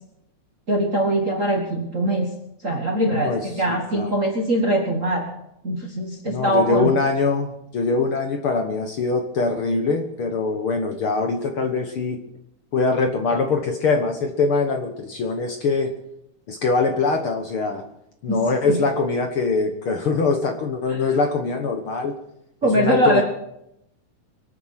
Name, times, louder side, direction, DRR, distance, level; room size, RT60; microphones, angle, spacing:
voice 1, 0.7-2.3 2.6-5.3 5.6-6.9 18.3-18.4 18.7-18.8 20.9-21.0 22.6-23.2, right 1 dB, 35° right, 2 dB, 1.3 m, -22 dB
voice 2, 3.2-4.1 6.3-12.2 12.7-15.9 16.5-17.8 18.2-22.1 22.6-23.2, left 4 dB, 55° left, 5 dB, 1.7 m, -23 dB
24.0 x 9.2 x 5.8 m, 0.80 s
omnidirectional pair, 3.5 m